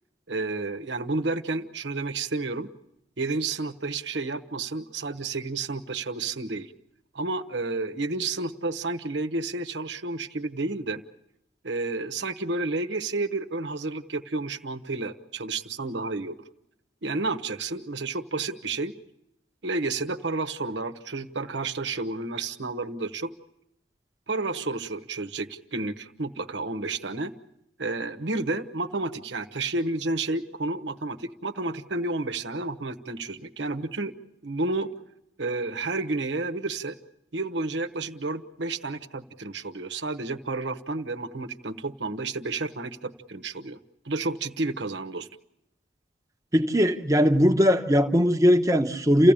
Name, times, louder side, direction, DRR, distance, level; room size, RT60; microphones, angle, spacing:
voice 1, 0.3-2.7 3.2-6.7 7.1-11.0 11.6-16.4 17.0-18.9 19.6-23.3 24.3-27.3 27.8-34.1 34.4-34.9 35.4-37.0 37.3-43.8 44.0-45.3, right 3 dB, 85° right, 7 dB, 1.1 m, -31 dB
voice 2, 46.5-49.3, equal, 20° right, 5 dB, 1.1 m, -20 dB
29.0 x 15.5 x 8.8 m, 0.87 s
head